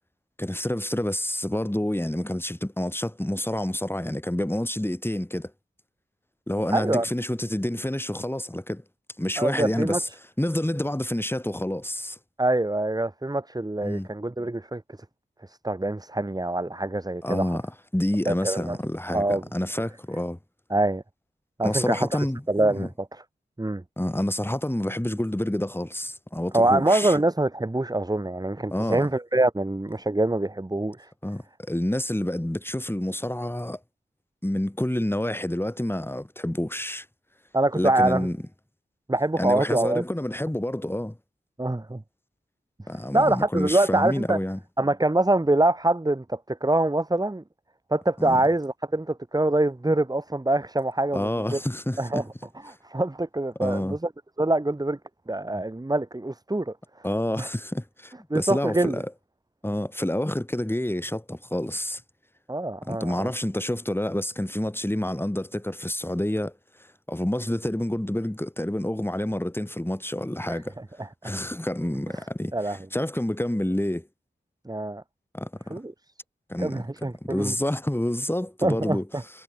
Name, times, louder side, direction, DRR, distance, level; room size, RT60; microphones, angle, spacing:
voice 1, 0.4-5.5 6.5-8.8 9.2-10.1 10.4-12.2 13.8-14.1 17.2-17.6 17.9-20.4 21.6-22.4 22.7-22.9 24.0-27.2 28.7-29.1 31.2-31.4 31.7-33.8 34.4-37.1 37.7-38.4 39.4-41.2 42.9-44.6 48.2-48.4 51.1-52.2 53.6-54.0 55.5-55.6 57.0-59.1 59.6-62.0 62.8-66.5 67.1-70.8 71.2-74.1 75.3-75.8 76.5-76.9 77.2-79.1, left 1 dB, 10° left, 7.5 m, -28 dB
voice 2, 6.7-7.1 9.4-10.0 12.4-14.8 15.5-17.5 18.3-18.8 19.1-19.4 20.7-21.0 21.6-22.1 22.5-22.9 23.6-23.8 26.5-31.1 37.5-38.3 39.1-40.0 41.6-42.0 43.1-44.4 44.8-47.4 47.9-51.6 52.0-52.2 52.7-54.1 54.4-55.0 55.3-56.7 57.4-57.5 58.3-59.0 62.5-63.3 70.5-71.1 72.5-72.8 74.7-75.0 75.7-75.9 76.6-77.5 78.6-79.2, right 2 dB, 20° right, 1.8 m, -25 dB
cardioid pair, 60°, 20 cm